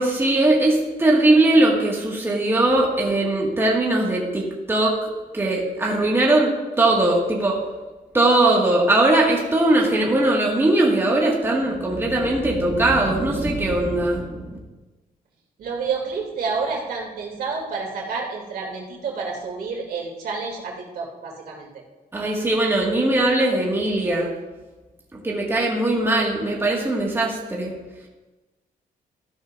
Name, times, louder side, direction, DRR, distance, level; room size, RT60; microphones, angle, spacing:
voice 1, 0.0-7.6 8.1-14.6 22.1-24.3 25.1-27.7, right 2 dB, 15° right, -3 dB, 2.0 m, -20 dB
voice 2, 15.6-21.8, right 4 dB, 75° right, -2 dB, 3.1 m, -29 dB
14.5 x 12.0 x 2.7 m, 1.2 s
cardioid pair, 125°, 15 cm